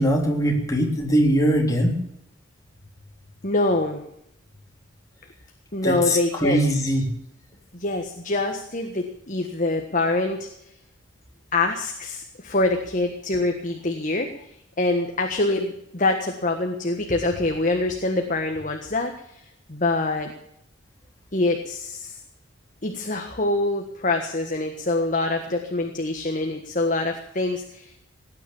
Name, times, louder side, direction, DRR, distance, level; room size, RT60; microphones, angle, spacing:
voice 1, 0.0-1.9 5.8-7.1, equal, 15° left, 0 dB, 3.5 m, -21 dB
voice 2, 3.4-4.0 5.7-6.6 7.7-10.5 11.5-14.3 14.8-19.4 19.7-20.3 21.3-22.2 22.8-28.0, left 2 dB, 40° left, 4 dB, 1.5 m, -25 dB
18.0 x 9.6 x 7.1 m, 0.76 s
head